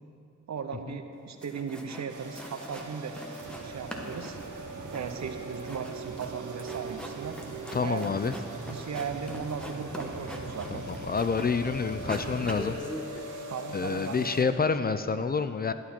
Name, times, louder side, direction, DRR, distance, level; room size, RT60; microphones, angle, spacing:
voice 1, 0.5-3.2 3.6-4.4 4.9-7.4 7.8-10.8 13.5-15.1, right 6 dB, 65° right, 7 dB, 0.8 m, -37 dB
sound 1, 1.1-1.2 1.4-2.1 2.3-3.6 3.9-11.6 11.9-13.2, equal, 5° left, 1.2 m, -42 dB
sound 2, 2.1-14.4, right 1 dB, 80° right, 1.3 m, -43 dB
sound 3, 3.4-12.8, right 5 dB, 40° right, 0.6 m, -42 dB
voice 2, 7.7-8.3 10.7-12.8 13.7-15.7, left 5 dB, 30° left, 11 dB, 0.4 m, -28 dB
11.5 x 11.0 x 4.4 m, 2.7 s
cardioid pair, 85°, 30 cm